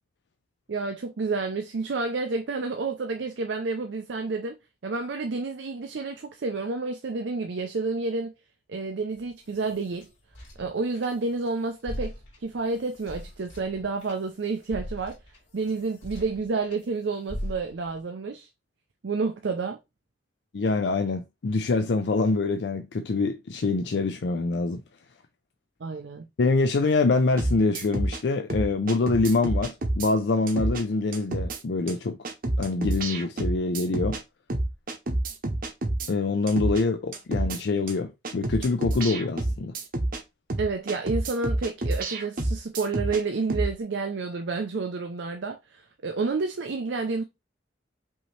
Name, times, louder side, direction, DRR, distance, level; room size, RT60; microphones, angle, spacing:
voice 1, 0.7-4.6 4.8-8.3 8.7-10.1 10.6-12.1 12.4-15.2 15.5-18.5 19.0-19.8 25.8-26.3 40.6-47.2, right 3 dB, 70° right, 0.5 m, -30 dB
sound 1, 9.2-11.5 11.8-16.9 17.3-18.0, equal, 90° left, 2.7 m, -40 dB
voice 2, 20.5-24.8 26.4-32.2 32.6-34.2 36.1-39.8, left 3 dB, 65° left, 0.4 m, -25 dB
sound 2, 27.4-28.2 28.5-30.1 30.5-30.8 31.1-31.6 31.9-32.0 32.2-34.2 34.5-36.1 36.5-36.8 37.1-37.6 37.9-38.0 38.2-40.2 40.5-43.2 43.5-43.7, right 1 dB, 50° right, 0.8 m, -28 dB
5.4 x 2.8 x 3.2 m
head